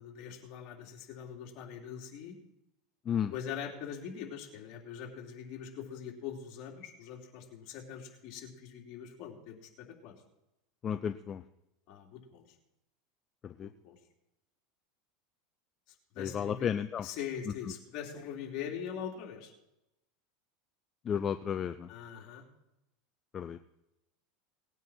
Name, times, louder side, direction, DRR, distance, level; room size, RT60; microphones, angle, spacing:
voice 1, 0.0-2.3 3.3-9.6 10.0-10.1 11.9-12.4 13.6-14.0 16.1-16.7 17.0-19.5 21.9-22.4, left 8 dB, 55° left, 0 dB, 3.2 m, -42 dB
voice 2, 10.8-11.4 13.4-13.7 16.2-17.1 21.0-21.9 23.3-23.6, left 8 dB, 30° left, 10 dB, 0.5 m, -33 dB
19.0 x 9.1 x 4.4 m, 0.90 s
supercardioid pair, 130°, 0 cm